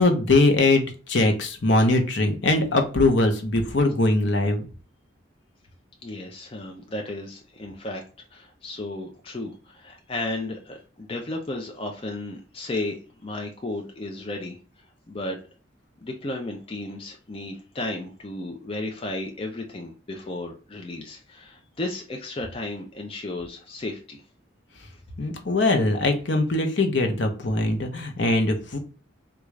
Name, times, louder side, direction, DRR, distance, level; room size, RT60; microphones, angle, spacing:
voice 1, 0.0-4.6 25.2-28.8, left 2 dB, 70° left, 4 dB, 0.7 m, -21 dB
voice 2, 6.0-8.0 8.3-14.6 15.1-15.4 16.0-24.2, left 2 dB, 30° left, 2 dB, 0.4 m, -34 dB
3.6 x 2.4 x 3.1 m, 0.36 s
head